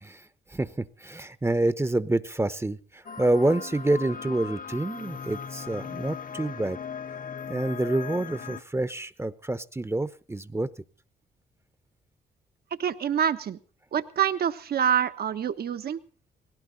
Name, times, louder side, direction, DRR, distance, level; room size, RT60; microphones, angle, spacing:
voice 1, 0.0-6.8 7.5-10.7, right 2 dB, 15° right, 14 dB, 0.9 m, -27 dB
sound 1, 3.0-8.6, left 6 dB, 50° left, 1.0 m, -38 dB
voice 2, 12.8-13.6 13.9-16.0, right 8 dB, 60° right, 11 dB, 1.2 m, -26 dB
18.5 x 16.5 x 4.0 m, 0.42 s
supercardioid pair, 55°, 18 cm